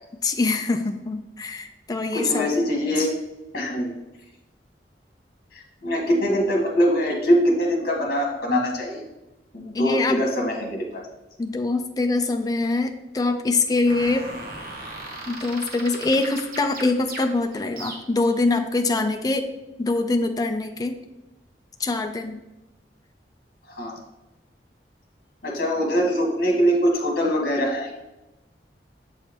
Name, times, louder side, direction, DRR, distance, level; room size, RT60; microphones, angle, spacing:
voice 1, 0.2-2.5 9.7-10.2 11.4-14.3 15.3-19.5 19.8-21.0 21.8-22.4, left 3 dB, 20° left, 6 dB, 0.4 m, -24 dB
voice 2, 2.1-3.1 3.5-3.9 5.5-9.0 9.5-11.0 23.7-24.0 25.4-28.0, equal, 55° left, 0 dB, 1.5 m, -23 dB
sound 1, 13.9-18.3, right 2 dB, 55° right, 1.0 m, -38 dB
7.2 x 4.9 x 2.9 m, 1.0 s
head